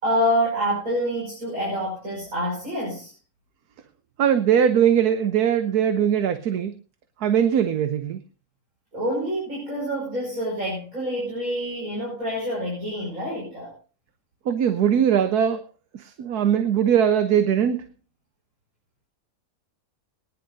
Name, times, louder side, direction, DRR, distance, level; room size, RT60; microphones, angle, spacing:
voice 1, 0.0-3.1 8.9-13.7, equal, 65° right, -5 dB, 6.2 m, -27 dB
voice 2, 4.2-6.7 7.2-8.2 14.5-15.6 15.9-17.8, right 8 dB, 90° right, 9 dB, 1.4 m, -20 dB
21.5 x 10.5 x 2.7 m, 0.36 s
omnidirectional pair, 1.6 m